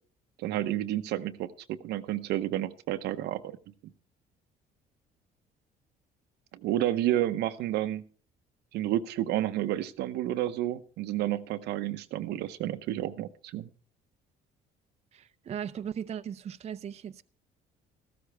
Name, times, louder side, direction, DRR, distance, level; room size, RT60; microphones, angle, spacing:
voice 1, 0.4-3.5 6.6-8.0 8.7-13.7, right 13 dB, 80° right, 0.8 m, -30 dB
voice 2, 15.1-17.2, right 8 dB, 40° right, 0.6 m, -37 dB
14.5 x 13.0 x 3.4 m
cardioid pair, 110°, 17 cm